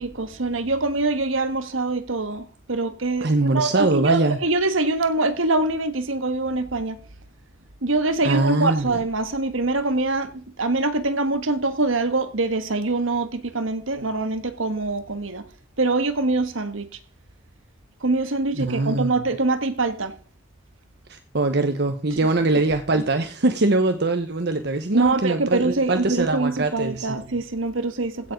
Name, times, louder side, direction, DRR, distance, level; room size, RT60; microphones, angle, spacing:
voice 1, 0.0-7.0 7.8-15.4 15.8-16.9 18.0-20.1 23.0-23.1 24.9-28.3, right 2 dB, 85° right, 1.6 m, -24 dB
voice 2, 3.2-4.4 8.2-9.0 18.6-19.2 21.1-27.2, right 2 dB, 55° right, 1.0 m, -22 dB
15.5 x 7.2 x 5.3 m
head